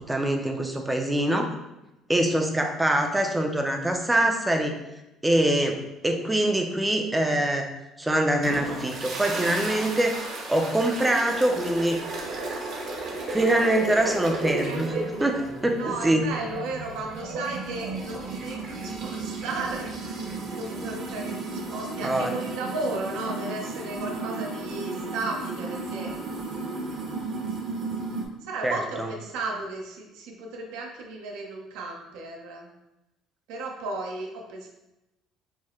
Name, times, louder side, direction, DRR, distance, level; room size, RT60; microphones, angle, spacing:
voice 1, 0.1-1.5 2.1-4.8 5.2-7.7 8.0-10.2 10.5-12.0 13.3-14.9 15.2-16.2 22.0-22.3 28.6-29.1, right 1 dB, 10° right, 3 dB, 0.4 m, -24 dB
sound 1, 8.4-28.3, right 3 dB, 50° right, 0.8 m, -34 dB
voice 2, 14.5-15.3 15.8-20.1 20.6-26.1 28.4-32.7 33.5-34.7, right 2 dB, 85° right, 0 dB, 0.8 m, -34 dB
4.6 x 2.1 x 4.3 m, 0.96 s
cardioid pair, 155°, 0 cm